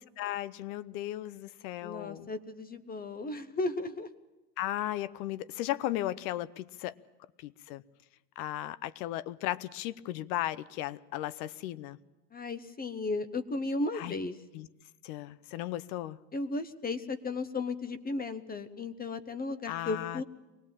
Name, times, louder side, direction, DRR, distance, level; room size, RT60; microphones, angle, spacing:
voice 1, 0.0-2.3 4.6-6.9 7.4-7.8 8.4-12.0 13.9-14.1 14.5-14.7 15.0-16.2 19.7-20.2, left 14 dB, 60° left, 0.8 m, -36 dB
voice 2, 1.8-4.1 12.3-14.3 16.3-20.2, left 3 dB, 20° left, 0.9 m, -35 dB
23.5 x 18.0 x 7.4 m
supercardioid pair, 105°, 49 cm